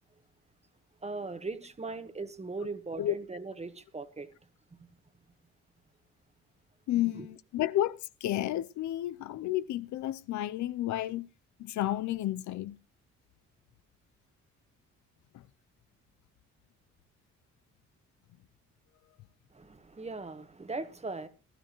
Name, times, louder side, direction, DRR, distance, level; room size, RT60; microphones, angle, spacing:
voice 1, 1.0-4.3 6.9-7.3 19.5-21.3, right 3 dB, 20° right, 1.4 m, -39 dB
voice 2, 6.9-11.3 11.6-12.8 15.3-15.4, left 13 dB, 70° left, 0.6 m, -31 dB
18.0 x 13.0 x 3.0 m
cardioid pair, 90°, 30 cm